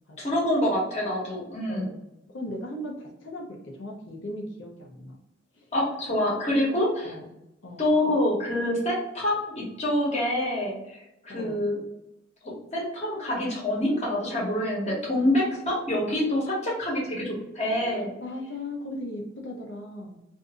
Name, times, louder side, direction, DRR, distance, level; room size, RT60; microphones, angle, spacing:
voice 1, 0.2-1.9 5.7-7.1 7.8-11.8 12.4-18.1, left 1 dB, 35° left, -4 dB, 1.0 m, -26 dB
voice 2, 1.7-2.0 2.3-5.2 5.5-5.7 6.5-6.7 7.0-7.2 7.6-7.8 11.3-11.6 17.7-20.2, left 1 dB, 85° left, 0 dB, 0.8 m, -38 dB
2.7 x 2.5 x 3.6 m, 0.90 s
head